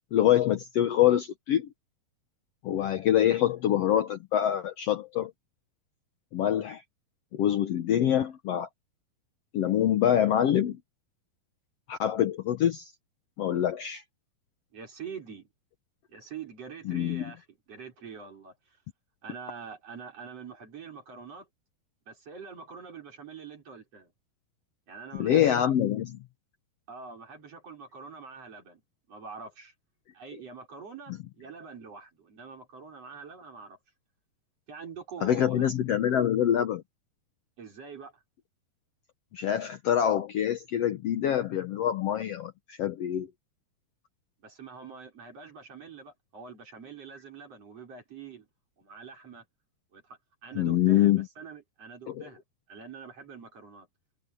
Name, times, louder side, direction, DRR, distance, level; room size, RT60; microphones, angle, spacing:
voice 1, 0.1-1.7 2.6-5.3 6.3-6.8 7.3-8.7 9.5-10.8 11.9-12.9 13.4-14.0 16.9-17.2 25.1-26.2 35.2-36.8 39.3-43.3 50.6-51.3 52.1-52.2, left 11 dB, 85° left, 1.4 m, -25 dB
voice 2, 14.7-15.5 16.1-18.8 19.2-21.5 22.1-24.1 24.9-25.8 26.9-28.8 29.1-29.7 30.1-33.8 34.7-35.7 37.6-38.2 44.4-48.5 48.8-49.4 49.9-53.9, right 6 dB, 40° right, 6.4 m, -45 dB
omnidirectional pair, 4.2 m